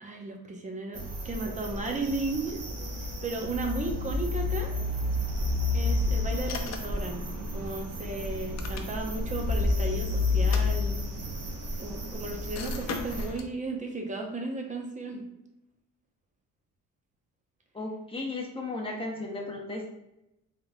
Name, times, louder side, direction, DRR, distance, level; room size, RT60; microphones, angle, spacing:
voice 1, 0.0-2.6 3.2-4.8 5.7-7.2 7.5-11.0 11.8-15.2, right 3 dB, 20° right, 2 dB, 0.8 m, -35 dB
sound 1, 0.9-13.3, left 2 dB, 45° right, 1.0 m, -30 dB
sound 2, 6.5-7.1 8.3-9.2 10.4-11.3 12.5-13.5, left 5 dB, 50° left, 0.6 m, -40 dB
voice 2, 17.7-19.9, left 2 dB, 15° left, -2 dB, 1.0 m, -35 dB
3.9 x 3.7 x 2.3 m, 0.89 s
cardioid pair, 100°, 35 cm